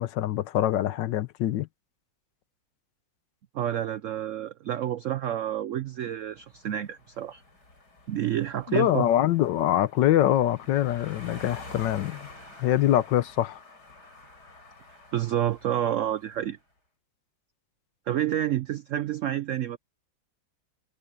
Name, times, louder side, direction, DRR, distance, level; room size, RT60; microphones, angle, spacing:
voice 1, 0.0-1.7 8.7-12.3 12.6-13.6, left 12 dB, 80° left, 1.4 m, -24 dB
voice 2, 3.5-7.4 8.1-9.1 15.1-16.6 18.1-19.8, right 11 dB, 90° right, 0.6 m, -29 dB
sound 1, 6.2-16.5, left 2 dB, 60° left, 6.8 m, -48 dB
omnidirectional pair, 2.0 m